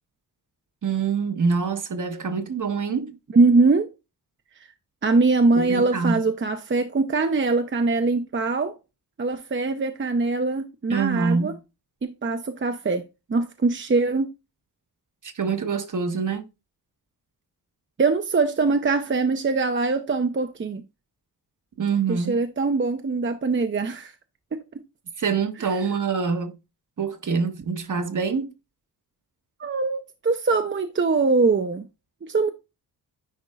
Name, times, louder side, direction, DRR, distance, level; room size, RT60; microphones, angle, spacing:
voice 1, 0.8-3.2 5.5-6.2 10.9-11.6 15.2-16.5 21.8-22.4 25.2-26.5 27.0-28.5, right 5 dB, 50° right, 1.3 m, -25 dB
voice 2, 3.3-3.9 5.0-8.7 9.2-11.5 12.0-13.0 13.3-14.3 18.0-20.8 22.1-24.1 24.5-24.6 29.6-31.8 32.3-32.5, right 3 dB, 30° right, 0.7 m, -22 dB
10.5 x 4.3 x 2.4 m
cardioid pair, 90°, 40 cm